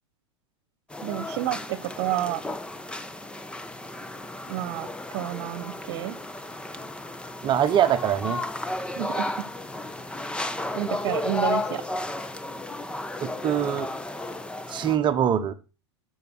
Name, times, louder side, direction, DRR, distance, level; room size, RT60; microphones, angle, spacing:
sound 1, 0.9-15.0, left 2 dB, 5° left, 1.0 m, -33 dB
voice 1, 1.0-2.4 4.5-6.2 9.0-9.4 10.7-11.8, right 14 dB, 55° right, 15 dB, 1.2 m, -30 dB
voice 2, 7.4-8.4 13.2-13.9 14.7-15.5, right 9 dB, 35° right, 8 dB, 1.0 m, -23 dB
12.0 x 6.4 x 6.4 m, 0.33 s
hypercardioid pair, 105°, 15 cm